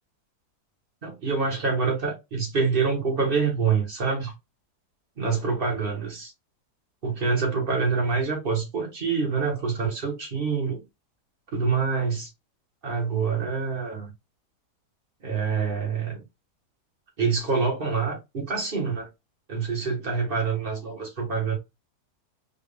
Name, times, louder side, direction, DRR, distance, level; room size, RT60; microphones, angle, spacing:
voice 1, 1.0-4.3 5.2-6.3 7.0-10.8 11.5-12.3 12.8-14.1 15.2-16.2 17.2-19.1 19.5-21.6, right 5 dB, 35° right, 1.6 m, -26 dB
4.6 x 2.5 x 3.5 m
omnidirectional pair, 1.7 m